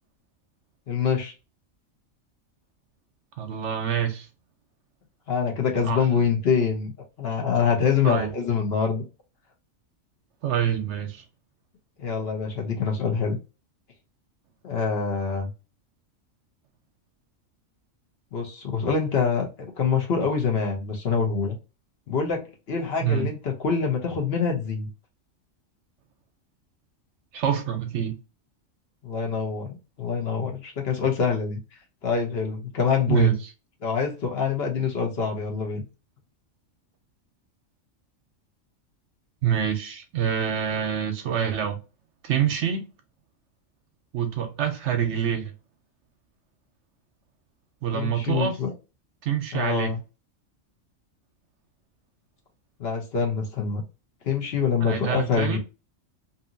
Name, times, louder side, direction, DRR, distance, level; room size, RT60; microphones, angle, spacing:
voice 1, 0.9-1.3 5.3-6.9 7.2-9.0 12.0-13.4 14.6-15.5 18.3-19.5 19.8-21.6 22.1-24.9 29.0-29.7 30.0-31.6 32.0-33.4 33.8-35.8 47.9-48.7 49.5-50.0 52.8-53.8 54.2-55.6, left 6 dB, 55° left, 0.9 m, -25 dB
voice 2, 3.4-4.3 5.8-6.1 8.0-8.3 10.4-11.2 23.0-23.3 27.3-28.1 33.1-33.4 39.4-41.8 42.2-42.8 44.1-45.5 47.8-48.5 49.2-49.9 54.8-55.6, right 9 dB, 70° right, 0.8 m, -26 dB
2.7 x 2.6 x 2.4 m
omnidirectional pair, 1.4 m